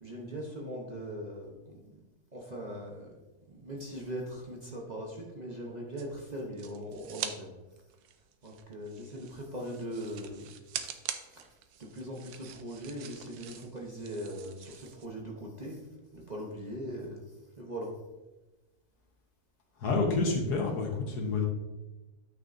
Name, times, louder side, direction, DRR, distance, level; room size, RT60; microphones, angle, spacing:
voice 1, 0.0-2.0 2.3-3.2 3.5-7.5 8.4-10.5 11.1-15.9 16.1-18.0, equal, 35° right, -2 dB, 0.9 m, -40 dB
sound 1, 6.0-7.4 7.7-15.1, right 9 dB, 80° right, 1.1 m, -44 dB
voice 2, 19.8-21.5, left 3 dB, 85° left, 1 dB, 1.8 m, -28 dB
9.2 x 6.2 x 2.6 m, 1.1 s
omnidirectional pair, 1.7 m